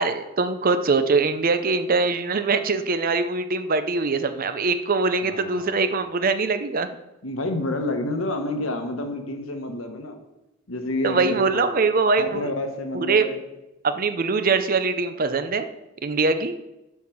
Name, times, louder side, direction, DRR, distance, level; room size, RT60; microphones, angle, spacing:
voice 1, 0.0-6.9 11.0-12.5 12.9-13.3 13.8-15.7 16.0-16.5, right 4 dB, 45° right, 10 dB, 0.6 m, -22 dB
voice 2, 5.2-5.8 7.2-10.2 10.7-11.6 12.2-13.4, left 1 dB, 90° left, 5 dB, 1.2 m, -29 dB
7.1 x 5.7 x 6.2 m, 0.96 s
head